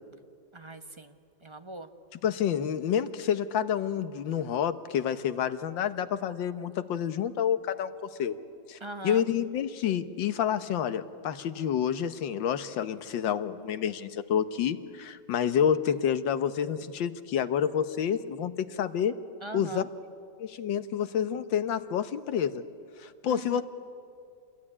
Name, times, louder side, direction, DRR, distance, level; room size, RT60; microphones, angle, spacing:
voice 1, 0.5-1.2 1.4-1.9 8.8-9.2 19.4-19.9 23.3-23.6, right 2 dB, 20° right, 7 dB, 0.8 m, -40 dB
voice 2, 2.2-8.4 8.7-19.1 19.5-19.8 20.4-22.6 23.0-23.6, left 8 dB, 90° left, 12 dB, 1.7 m, -29 dB
27.5 x 21.0 x 9.9 m, 2.5 s
omnidirectional pair, 2.0 m